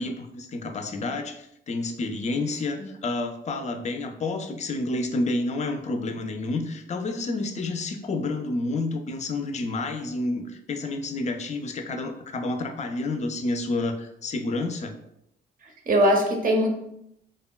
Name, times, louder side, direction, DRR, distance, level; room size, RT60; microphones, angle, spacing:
voice 1, 0.0-15.0, left 2 dB, 35° left, 6 dB, 0.4 m, -29 dB
voice 2, 15.6-16.7, equal, 45° right, 2 dB, 0.7 m, -22 dB
3.5 x 2.1 x 2.2 m, 0.79 s
cardioid pair, 90°, 20 cm